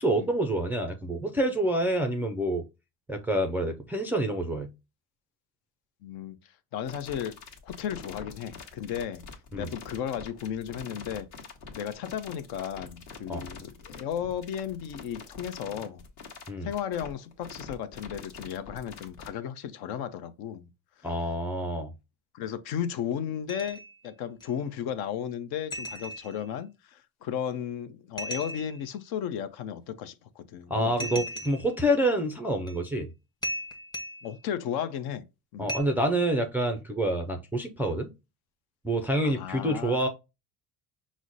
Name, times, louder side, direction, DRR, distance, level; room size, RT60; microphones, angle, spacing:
voice 1, 0.0-2.6 3.1-4.7 9.5-9.7 13.3-13.4 16.5-16.7 21.0-21.9 30.7-33.1 35.6-38.1 38.8-40.1, right 1 dB, 5° right, 0.3 m, -27 dB
voice 2, 6.0-6.4 6.7-7.3 7.6-9.2 9.5-11.3 11.7-16.0 16.6-20.7 21.0-21.1 22.3-31.2 34.2-35.2 35.5-35.7 39.2-40.1, left 9 dB, 70° left, 0.7 m, -34 dB
sound 1, 6.8-19.3, left 5 dB, 50° left, 1.1 m, -45 dB
sound 2, 23.5-24.0 24.4-24.5 25.7-26.5 28.2-28.9 31.0-31.8 32.7-32.8 33.4-34.4 35.7-35.8, equal, 10° left, 0.8 m, -37 dB
6.1 x 2.1 x 3.9 m
cardioid pair, 155°, 39 cm